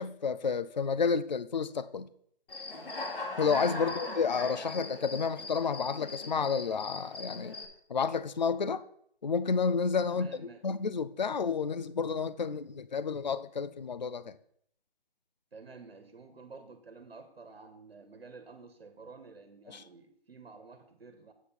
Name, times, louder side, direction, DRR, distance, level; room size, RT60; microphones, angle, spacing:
voice 1, 0.0-2.1 3.4-7.6 7.9-8.8 9.2-14.3 19.7-19.8, left 5 dB, 50° left, 0.4 m, -30 dB
Human voice / Cricket, 2.5-7.7, left 2 dB, 65° left, 2.1 m, -40 dB
voice 2, 10.1-10.6 15.5-21.3, right 4 dB, 75° right, 1.4 m, -51 dB
8.2 x 5.5 x 6.0 m
hypercardioid pair, 175°, 30 cm